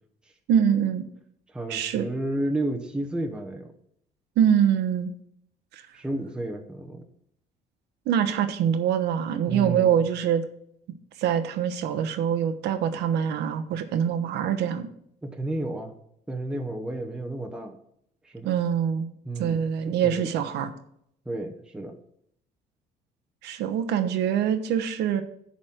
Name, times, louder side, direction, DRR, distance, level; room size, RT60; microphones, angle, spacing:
voice 1, 0.5-1.0 1.7-2.1 4.4-5.1 5.7-5.9 8.1-10.4 11.2-14.9 18.4-19.1 19.4-20.7 23.4-25.2, right 8 dB, 85° right, 9 dB, 1.1 m, -24 dB
voice 2, 1.5-3.7 5.9-7.0 9.5-10.0 15.2-15.9 16.3-17.8 18.2-18.5 19.2-20.3 21.2-22.0, right 1 dB, 5° right, 1 dB, 1.1 m, -32 dB
11.0 x 4.2 x 7.7 m, 0.70 s
cardioid pair, 110°, 17 cm